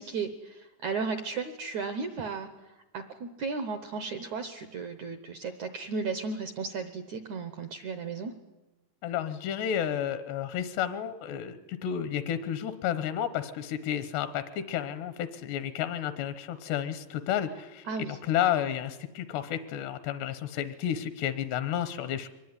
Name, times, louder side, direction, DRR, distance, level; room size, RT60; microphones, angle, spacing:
voice 1, 0.0-2.5 2.9-8.3 17.9-18.2, right 4 dB, 75° right, 8 dB, 1.7 m, -34 dB
voice 2, 9.0-22.3, left 10 dB, 80° left, 11 dB, 3.1 m, -31 dB
24.0 x 19.5 x 9.7 m, 1.1 s
omnidirectional pair, 4.8 m